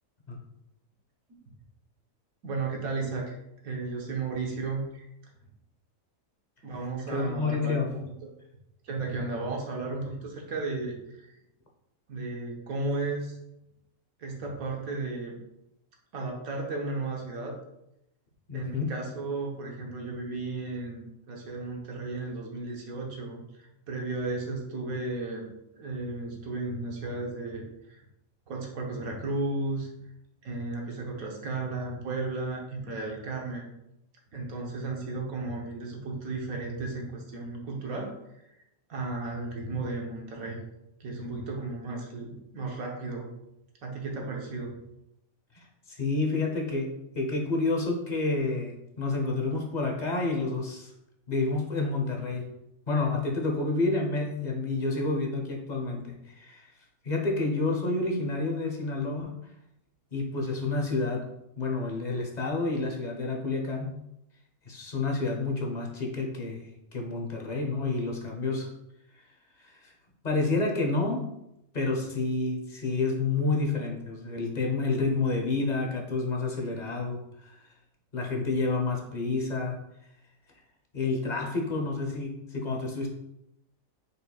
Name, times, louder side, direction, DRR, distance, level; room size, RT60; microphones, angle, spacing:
voice 1, 2.4-3.4 3.6-5.0 6.6-8.3 8.8-11.4 12.1-13.4 14.2-15.4 16.1-17.6 18.5-28.0 28.5-29.9 30.4-33.7 34.3-38.2 38.9-40.6 41.0-43.3 43.8-44.7, right 3 dB, 85° right, 0 dB, 1.4 m, -34 dB
voice 2, 7.1-7.9 18.5-18.9 45.5-50.9 51.3-52.5 52.9-56.7 57.0-59.4 60.1-61.3 61.6-63.9 64.6-68.7 69.6-69.9 70.2-71.3 71.7-77.6 78.1-79.8 80.9-83.1, left 3 dB, 40° left, 0 dB, 0.8 m, -29 dB
5.1 x 4.2 x 2.3 m, 0.82 s
omnidirectional pair, 1.4 m